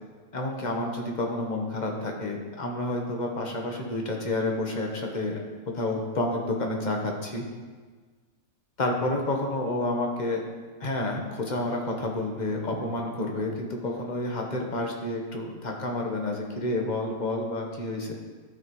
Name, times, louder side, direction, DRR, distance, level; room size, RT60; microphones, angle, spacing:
voice 1, 0.3-5.4 5.7-7.4 8.8-10.4 10.8-18.1, left 2 dB, 35° left, 1 dB, 1.1 m, -29 dB
13.0 x 5.8 x 3.1 m, 1.4 s
omnidirectional pair, 1.5 m